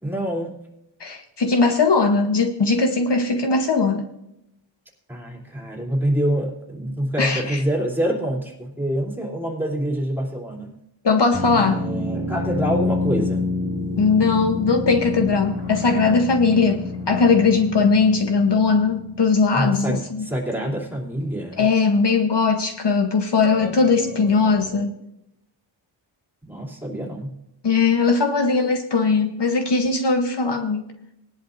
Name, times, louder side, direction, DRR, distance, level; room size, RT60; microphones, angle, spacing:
voice 1, 0.0-0.5 5.1-10.7 11.6-13.5 19.5-21.7 26.4-27.3, right 1 dB, 5° right, -3 dB, 3.1 m, -26 dB
voice 2, 1.0-4.1 7.2-7.6 11.0-11.8 14.0-20.3 21.6-24.9 27.6-30.9, left 4 dB, 55° left, 5 dB, 1.1 m, -19 dB
sound 1, 11.3-20.0 23.4-24.7, left 3 dB, 85° left, 4.4 m, -29 dB
20.0 x 11.0 x 2.6 m, 0.82 s
wide cardioid pair, 100°, 48 cm